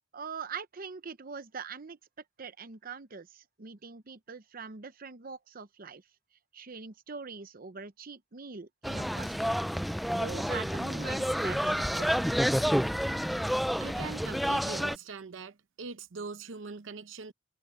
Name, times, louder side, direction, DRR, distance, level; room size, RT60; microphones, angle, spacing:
voice 1, 0.1-2.0 2.4-6.0 6.5-9.6 10.1-12.4, right 5 dB, 45° right, 0.8 m, -43 dB
sound 1, 8.8-15.0, equal, ahead, 0.3 m, -29 dB
voice 2, 13.8-17.3, right 4 dB, 75° right, 0.7 m, -42 dB
head